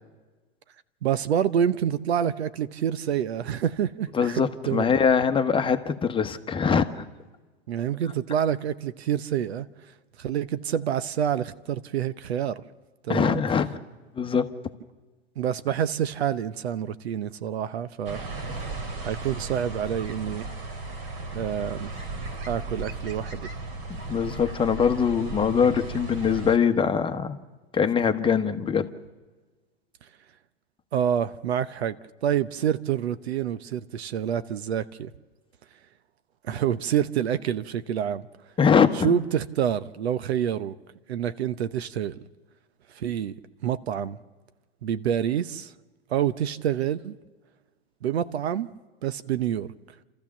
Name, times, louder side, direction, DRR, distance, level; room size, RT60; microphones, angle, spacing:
voice 1, 1.0-4.8 7.7-9.7 10.2-12.6 13.0-13.4 15.4-18.2 19.0-20.5 21.3-21.9 22.4-23.5 30.9-32.0 32.2-35.1 36.4-38.3 39.0-40.7 41.1-42.2 42.9-43.3 43.6-44.2 44.8-45.7 46.1-47.2 48.0-48.7 49.0-49.7, right 9 dB, 85° right, 0.8 m, -27 dB
voice 2, 4.1-7.1 13.1-13.8 14.1-14.5 24.1-27.4 27.7-28.9 38.6-39.1, left 6 dB, 15° left, 1.0 m, -23 dB
sound 1, 18.0-26.6, right 3 dB, 60° right, 3.1 m, -36 dB
28.0 x 14.0 x 7.2 m
hypercardioid pair, 110°, 31 cm